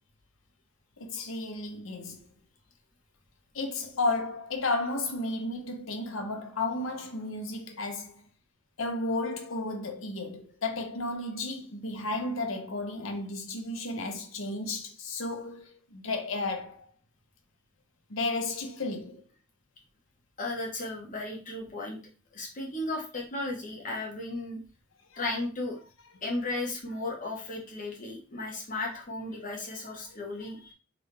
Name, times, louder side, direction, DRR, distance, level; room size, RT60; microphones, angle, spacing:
voice 1, 1.0-2.2 3.5-8.1 8.8-16.9 18.1-19.2 25.1-25.2 30.1-30.2, left 2 dB, 85° left, 1.0 m, -33 dB
voice 2, 20.4-22.0 22.3-24.6 25.2-25.8 26.2-30.7, left 2 dB, 40° left, 1.4 m, -35 dB
3.7 x 3.3 x 3.4 m
head